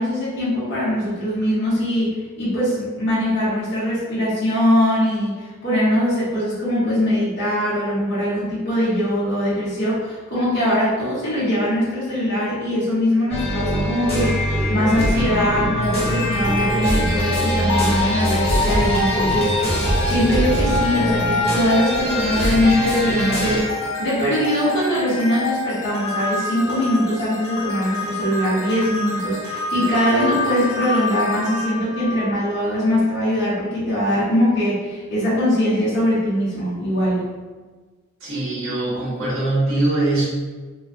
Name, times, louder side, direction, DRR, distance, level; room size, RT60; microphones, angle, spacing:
voice 1, 0.0-37.2, left 1 dB, 55° left, -9 dB, 0.9 m, -21 dB
sound 1, 13.3-23.6, equal, 30° left, 0.8 m, -22 dB
sound 2, 15.8-33.0, left 2 dB, 80° left, 0.6 m, -27 dB
voice 2, 38.2-40.2, right 2 dB, 70° right, -9 dB, 1.1 m, -22 dB
3.1 x 2.2 x 2.5 m, 1.4 s
head